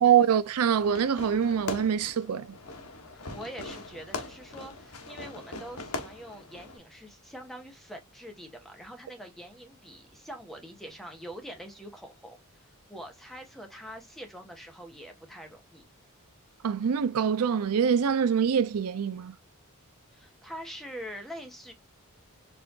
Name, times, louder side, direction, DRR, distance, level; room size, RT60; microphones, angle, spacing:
voice 1, 0.0-2.5 16.6-19.3, right 8 dB, 75° right, 0.4 m, -24 dB
Fireworks, 0.8-6.8, left 3 dB, 75° left, 1.1 m, -40 dB
voice 2, 3.1-15.8 20.1-21.7, equal, ahead, 1.3 m, -44 dB
4.6 x 3.2 x 2.7 m
head